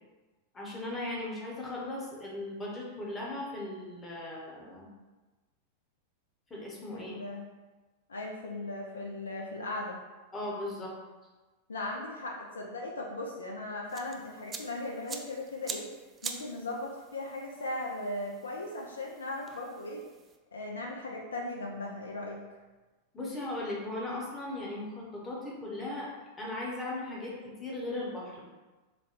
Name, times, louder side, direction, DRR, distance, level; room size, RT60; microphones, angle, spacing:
voice 1, 0.5-4.9 6.5-7.2 10.3-10.9 23.1-26.1 26.4-28.4, left 2 dB, 20° left, -4 dB, 0.9 m, -37 dB
voice 2, 6.9-7.4 8.1-10.0 11.7-15.9 16.2-20.0 20.5-22.4, left 2 dB, 70° left, -1 dB, 0.4 m, -38 dB
sound 1, 13.9-20.4, right 5 dB, 20° right, 0.3 m, -45 dB
3.8 x 2.2 x 3.0 m, 1.2 s
figure-of-eight pair, 90°, 0 cm